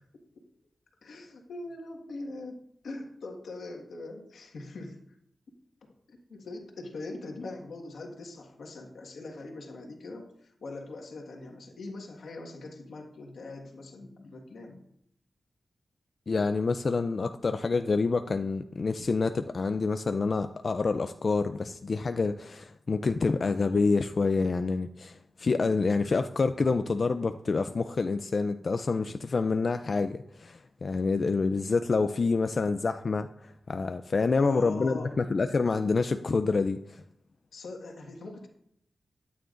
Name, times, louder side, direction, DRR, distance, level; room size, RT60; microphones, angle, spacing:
voice 1, 1.0-5.2 6.3-14.8 34.4-35.2 37.5-38.5, left 2 dB, 85° left, 1 dB, 1.6 m, -42 dB
voice 2, 16.3-37.0, left 4 dB, 50° left, 9 dB, 0.4 m, -27 dB
13.0 x 9.3 x 2.5 m, 0.75 s
wide cardioid pair, 85°, 0 cm